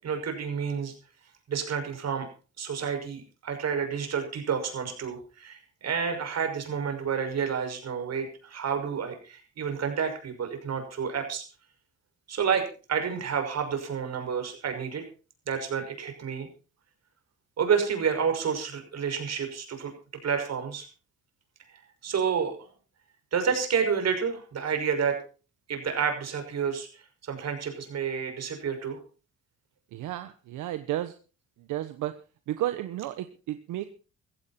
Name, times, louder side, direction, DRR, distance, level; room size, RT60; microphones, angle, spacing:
voice 1, 0.0-0.9 1.5-2.3 2.6-11.4 12.3-15.0 15.5-16.5 17.6-19.9 20.2-20.9 22.0-22.7 23.3-25.2 25.7-26.9 27.2-29.0, right 6 dB, 60° right, 6 dB, 6.0 m, -29 dB
voice 2, 29.9-31.2 31.6-32.1 32.5-33.9, right 13 dB, 85° right, 10 dB, 1.1 m, -32 dB
16.5 x 15.0 x 4.3 m, 0.36 s
cardioid pair, 90°, 30 cm